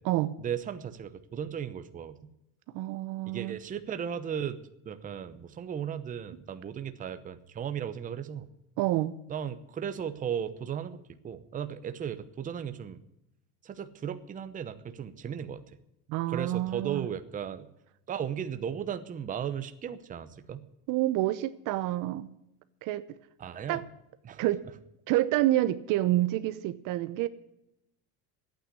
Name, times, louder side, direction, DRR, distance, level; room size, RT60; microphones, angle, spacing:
voice 1, 0.4-2.3 3.3-4.6 4.8-8.5 9.3-11.0 11.2-13.0 13.6-15.6 16.3-17.7 18.1-20.6 23.4-23.8 24.2-24.4, right 8 dB, 20° right, 9 dB, 0.8 m, -36 dB
voice 2, 2.7-3.6 8.8-9.1 16.1-17.1 20.9-22.3 22.8-23.0 23.7-23.8 24.4-24.6 25.1-27.3, right 15 dB, 55° right, 13 dB, 0.8 m, -28 dB
11.5 x 9.0 x 9.5 m, 0.83 s
cardioid pair, 155°, 39 cm